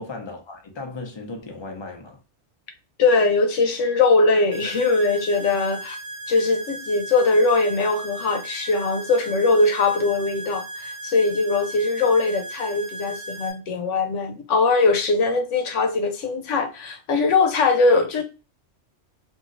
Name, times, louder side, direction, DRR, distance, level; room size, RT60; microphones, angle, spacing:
voice 1, 0.0-2.2, left 3 dB, 30° left, 0.5 m, -36 dB
voice 2, 3.0-6.0 6.3-18.2, left 3 dB, 85° left, 1.0 m, -21 dB
sound 1, 4.5-13.5, right 2 dB, 55° right, 1.0 m, -36 dB
3.0 x 2.7 x 2.5 m
omnidirectional pair, 1.2 m